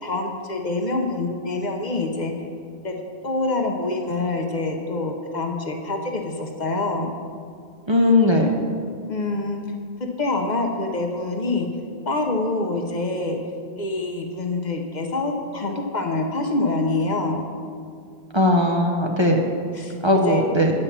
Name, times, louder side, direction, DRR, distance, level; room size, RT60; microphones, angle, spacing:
voice 1, 0.0-2.3 2.8-2.9 3.2-7.1 9.1-9.6 10.2-11.7 12.1-13.4 13.8-17.4 19.7-19.9 20.3-20.4, left 2 dB, 45° left, 3 dB, 0.9 m, -25 dB
voice 2, 7.9-8.5 18.3-19.4 20.0-20.7, left 1 dB, 30° right, 0 dB, 0.7 m, -18 dB
9.6 x 5.4 x 7.1 m, 2.3 s
omnidirectional pair, 1.1 m